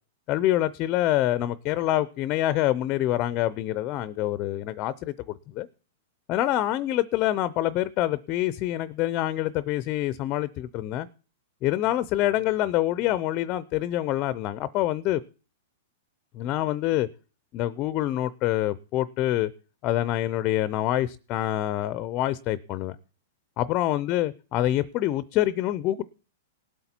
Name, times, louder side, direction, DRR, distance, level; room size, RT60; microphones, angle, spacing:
voice 1, 0.3-5.7 6.3-11.1 11.6-15.2 16.3-17.1 17.5-19.5 19.8-23.0 23.6-26.0, left 14 dB, 30° left, 0.5 m, -26 dB
18.5 x 8.1 x 4.4 m
supercardioid pair, 160°, 0 cm